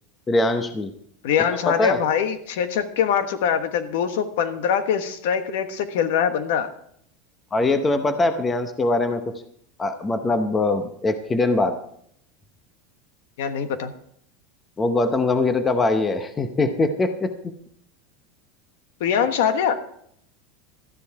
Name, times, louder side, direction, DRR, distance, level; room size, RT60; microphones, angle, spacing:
voice 1, 0.3-0.9 1.5-2.0 7.5-9.2 9.8-11.7 14.8-17.5, left 2 dB, 15° left, 8 dB, 0.8 m, -22 dB
voice 2, 1.2-6.7 13.4-13.9 19.0-19.8, left 8 dB, 70° left, 9 dB, 1.3 m, -23 dB
13.5 x 10.0 x 4.7 m, 0.67 s
supercardioid pair, 170°, 0 cm